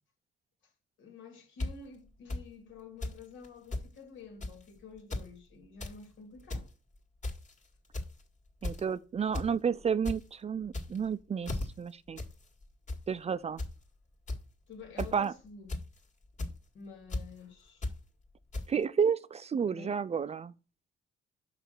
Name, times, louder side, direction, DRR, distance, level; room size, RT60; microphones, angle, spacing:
voice 1, 1.0-6.7 14.7-15.8 16.7-17.9 19.7-20.0, left 4 dB, 75° left, 2.4 m, -50 dB
sound 1, 1.6-1.7 2.3-2.4 3.0-3.2 3.4-3.9 4.4-4.6 5.0-5.3 5.6-6.0 6.3-6.7 7.2-7.5 7.9-8.2 8.6-8.9 9.3-9.5 9.8-10.2 10.7-11.1 11.4-11.7 12.2-12.3 12.6-13.0 13.6-13.7 14.3-14.4 15.0-15.2 15.7-16.0 16.4-16.5 17.1-17.2 17.8-18.0 18.5-18.6, left 2 dB, 35° left, 2.0 m, -35 dB
voice 2, 8.6-12.2 13.1-13.6 15.1-15.3 18.7-20.5, right 7 dB, 35° right, 0.4 m, -31 dB
5.7 x 5.0 x 6.5 m
cardioid pair, 90°, 20 cm